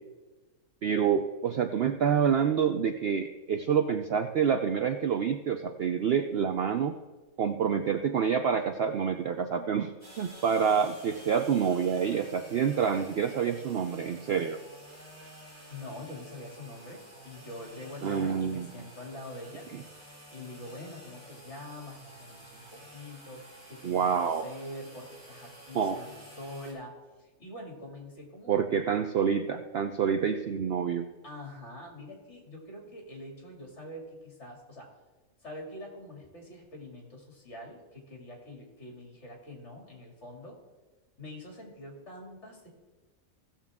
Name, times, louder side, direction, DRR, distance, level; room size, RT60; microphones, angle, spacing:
voice 1, 0.8-6.9 7.4-14.6 18.0-18.7 23.8-24.5 25.7-26.0 28.5-31.1, right 7 dB, 65° right, 7 dB, 0.6 m, -27 dB
sound 1, 10.0-26.7, right 1 dB, 10° left, 4.1 m, -50 dB
voice 2, 15.7-19.7 20.3-28.6 31.2-34.9 35.4-40.6 41.2-42.7, left 1 dB, 50° left, 0 dB, 2.8 m, -45 dB
16.0 x 7.3 x 3.6 m, 1.2 s
omnidirectional pair, 1.5 m